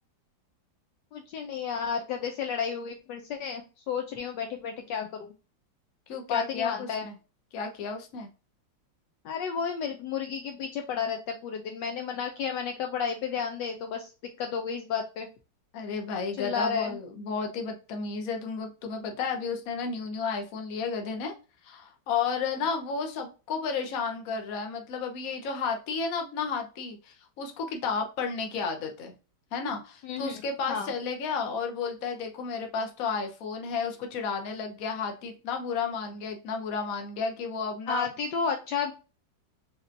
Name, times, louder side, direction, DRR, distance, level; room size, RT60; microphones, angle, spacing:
voice 1, 1.1-5.3 6.3-7.1 9.2-14.1 14.4-15.3 16.4-17.0 30.0-30.4 30.7-30.9 37.9-38.9, left 6 dB, 75° left, 4 dB, 1.2 m, -32 dB
voice 2, 6.1-7.2 7.5-8.3 15.7-21.3 21.6-29.1 29.5-38.1, left 5 dB, 55° left, 4 dB, 1.1 m, -32 dB
4.1 x 3.3 x 2.5 m, 0.33 s
omnidirectional pair, 2.1 m